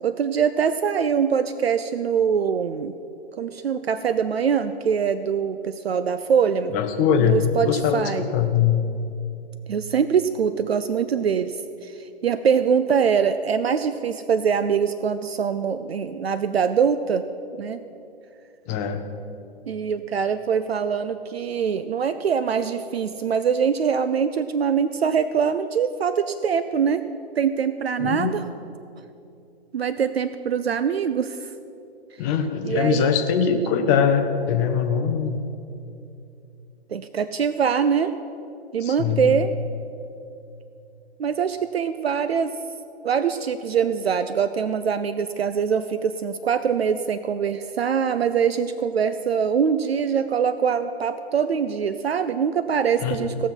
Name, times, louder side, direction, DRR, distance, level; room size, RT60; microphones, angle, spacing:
voice 1, 0.0-2.9 3.4-6.7 7.2-8.2 9.7-17.2 17.6-17.8 19.7-27.0 27.4-28.4 29.7-31.5 32.6-33.1 36.9-38.1 38.7-39.5 41.2-42.6 43.0-53.5, right 7 dB, 70° right, 12 dB, 0.5 m, -23 dB
voice 2, 6.7-8.8 18.7-19.0 28.0-28.3 32.2-35.4 38.8-39.3 53.0-53.4, left 7 dB, 15° left, 7 dB, 0.5 m, -22 dB
17.0 x 6.2 x 5.7 m, 2.7 s
figure-of-eight pair, 125°, 32 cm